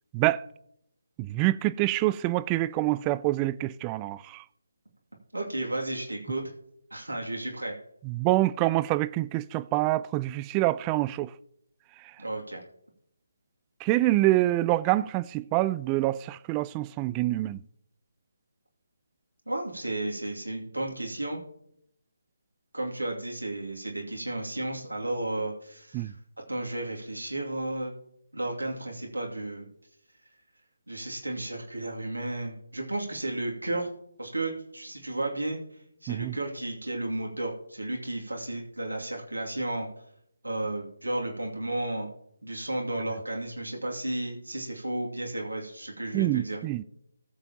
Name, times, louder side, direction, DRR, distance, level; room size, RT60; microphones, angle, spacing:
voice 1, 0.1-0.5 1.2-4.4 8.0-11.3 13.8-17.6 25.9-26.1 36.1-36.4 46.1-46.8, right 17 dB, 15° right, 0.3 m, -26 dB
voice 2, 5.3-6.5 6.9-7.7 12.2-12.6 19.5-21.4 22.7-26.1 26.5-27.9 28.3-29.7 30.9-33.9 34.2-35.6 36.0-39.9 40.4-42.1 42.4-46.6, right 2 dB, 80° right, 2.4 m, -33 dB
19.0 x 7.0 x 2.9 m
figure-of-eight pair, 150°, 0 cm